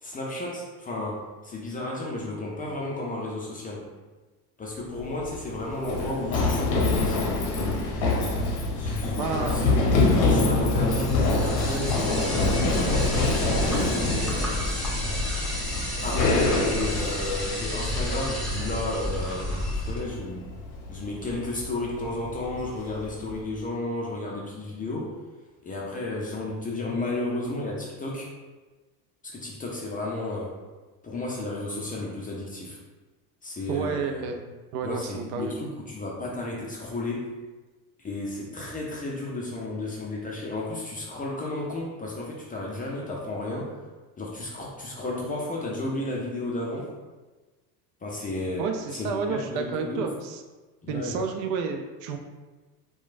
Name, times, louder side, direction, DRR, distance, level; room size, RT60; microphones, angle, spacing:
voice 1, 0.0-3.9 4.6-7.6 8.7-14.6 16.0-20.5 20.9-25.1 25.6-28.3 29.2-30.5 31.0-32.8 33.4-34.2 34.8-37.3 38.0-43.7 44.2-46.9 48.0-48.7 48.9-50.1 50.8-51.2, left 2 dB, 20° left, -3 dB, 0.4 m, -33 dB
Run, 4.8-23.4, left 2 dB, 50° left, 0.7 m, -26 dB
voice 2, 9.2-9.6 12.9-13.0 16.4-16.7 33.7-34.5 34.7-35.7 48.6-50.4 50.9-52.2, right 5 dB, 60° right, 5 dB, 0.5 m, -31 dB
sound 1, 10.9-20.0, left 1 dB, ahead, 0.9 m, -31 dB
3.0 x 2.2 x 2.4 m, 1.2 s
hypercardioid pair, 75°, 49 cm